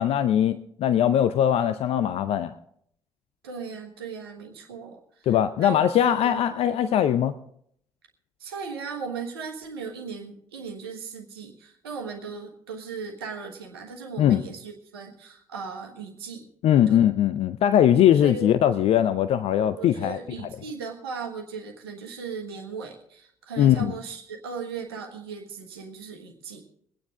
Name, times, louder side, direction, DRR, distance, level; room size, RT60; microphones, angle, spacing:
voice 1, 0.0-2.5 5.3-7.3 14.2-14.4 16.6-20.2 23.6-23.9, left 10 dB, 50° left, 12 dB, 0.5 m, -21 dB
voice 2, 3.4-5.3 5.6-6.5 6.8-7.0 8.4-16.4 16.9-17.0 18.1-18.5 19.8-26.6, right 5 dB, 75° right, 3 dB, 1.4 m, -37 dB
22.0 x 9.5 x 3.7 m, 0.67 s
figure-of-eight pair, 45°, 13 cm